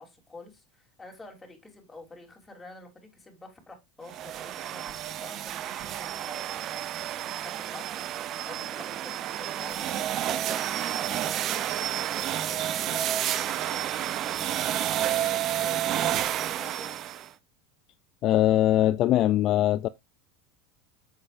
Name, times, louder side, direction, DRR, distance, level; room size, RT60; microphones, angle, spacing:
voice 1, 0.0-17.0, left 2 dB, 15° left, 3.4 m, -48 dB
sound 1, 4.1-17.3, right 11 dB, 45° right, 0.7 m, -30 dB
voice 2, 18.2-19.9, left 13 dB, 45° left, 0.4 m, -22 dB
8.6 x 7.2 x 2.6 m
supercardioid pair, 115°, 0 cm